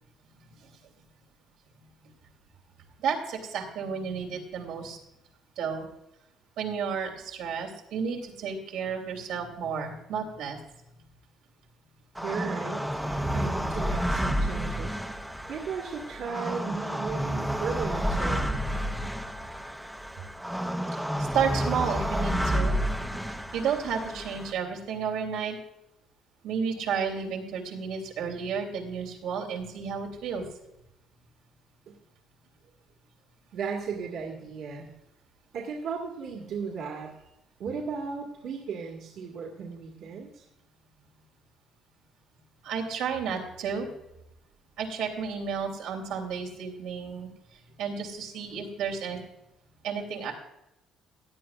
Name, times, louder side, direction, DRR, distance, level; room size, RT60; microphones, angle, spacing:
voice 1, 3.0-5.0 5.6-5.9 6.6-10.6 21.2-22.8 23.5-25.6 26.4-30.4 42.6-43.9 44.8-47.3 47.8-49.2 49.8-50.3, right 6 dB, 85° right, 1 dB, 3.0 m, -32 dB
sound 1, 12.1-24.5, equal, ahead, 0.6 m, -30 dB
voice 2, 12.2-12.8 13.3-18.5 31.9-32.0 33.5-34.9 35.5-37.1 37.6-40.4, right 5 dB, 60° right, -1 dB, 2.0 m, -36 dB
16.5 x 10.5 x 2.4 m, 0.86 s
cardioid pair, 150°, 0 cm